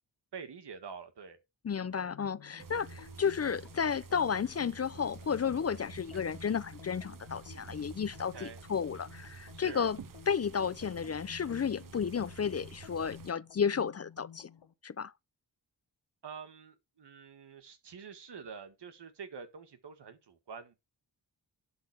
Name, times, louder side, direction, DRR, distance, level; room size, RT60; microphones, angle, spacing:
voice 1, 0.3-1.4 8.3-8.6 9.5-9.9 16.2-20.7, right 6 dB, 75° right, 1.8 m, -46 dB
voice 2, 1.6-10.0 10.3-14.5 14.8-15.1, left 7 dB, 35° left, 0.5 m, -32 dB
sound 1, 2.0-14.7, left 8 dB, 80° left, 1.2 m, -53 dB
sound 2, 2.6-13.3, right 5 dB, 50° right, 0.9 m, -50 dB
11.5 x 4.0 x 6.1 m
wide cardioid pair, 80°, 41 cm